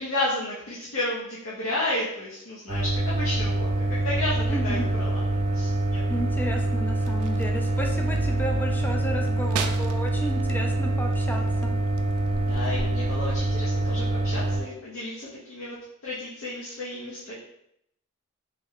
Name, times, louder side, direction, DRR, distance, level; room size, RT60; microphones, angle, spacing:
voice 1, 0.0-6.0 6.9-7.1 8.1-8.2 12.3-15.8 16.0-17.3, left 1 dB, 70° left, -7 dB, 0.7 m, -32 dB
sound 1, 2.7-14.6, right 2 dB, 30° right, 0.6 m, -25 dB
voice 2, 4.5-4.9 6.1-11.7, equal, 10° left, 1 dB, 0.3 m, -33 dB
sound 2, 6.8-12.7, right 7 dB, 85° right, 0.3 m, -40 dB
3.1 x 2.2 x 3.6 m, 0.75 s
head